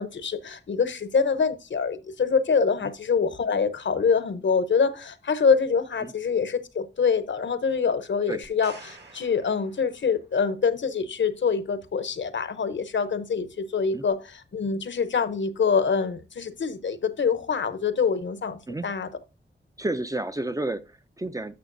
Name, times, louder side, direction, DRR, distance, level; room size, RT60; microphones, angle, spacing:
voice 1, 0.0-14.2 14.5-19.1, left 5 dB, 70° left, 0.8 m, -25 dB
sound 1, 8.4-10.4 14.1-14.2, right 3 dB, 60° right, 1.8 m, -49 dB
voice 2, 19.8-21.6, right 2 dB, 20° right, 0.4 m, -31 dB
11.5 x 6.8 x 2.6 m
wide cardioid pair, 105°, 20 cm